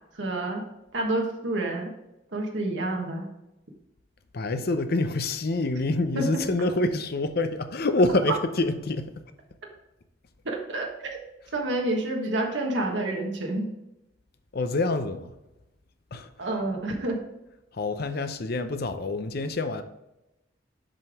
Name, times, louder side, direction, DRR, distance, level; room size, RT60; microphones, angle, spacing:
voice 1, 0.1-0.7 0.9-1.9 2.3-3.3 6.1-6.5 10.4-11.1 11.5-13.7 16.4-17.2, right 2 dB, 75° right, 1.3 m, -28 dB
voice 2, 4.3-9.1 14.5-15.3 16.1-16.3 17.8-19.8, left 2 dB, 55° left, 0.6 m, -26 dB
7.6 x 5.1 x 3.5 m
head